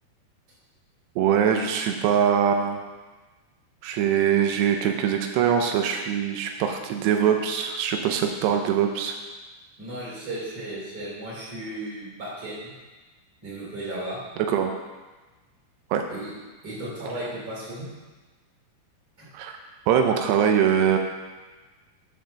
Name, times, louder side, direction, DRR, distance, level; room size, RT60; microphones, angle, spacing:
voice 1, 1.2-2.8 3.8-9.2 14.4-14.7 15.9-16.1 19.3-19.5 19.9-21.0, right 8 dB, 85° right, 4 dB, 2.8 m, -22 dB
voice 2, 9.8-12.7 13.4-14.2 16.1-16.3 16.6-17.9 19.2-19.3, right 1 dB, 25° right, -7 dB, 3.1 m, -35 dB
6.8 x 5.8 x 6.3 m, 1.3 s
omnidirectional pair, 4.8 m